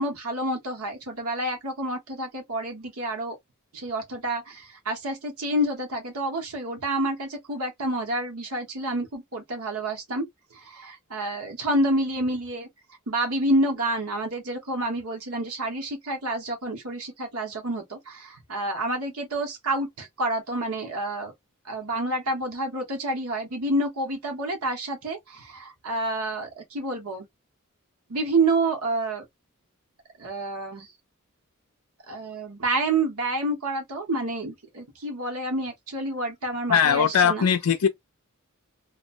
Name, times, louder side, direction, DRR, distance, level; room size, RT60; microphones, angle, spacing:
voice 1, 0.0-3.4 3.7-10.2 10.5-12.7 13.1-21.3 21.6-27.2 28.1-29.2 30.2-30.9 32.1-37.5, right 1 dB, 85° right, 1.1 m, -28 dB
voice 2, 36.7-37.9, left 7 dB, 85° left, 0.4 m, -20 dB
3.0 x 2.1 x 2.5 m
head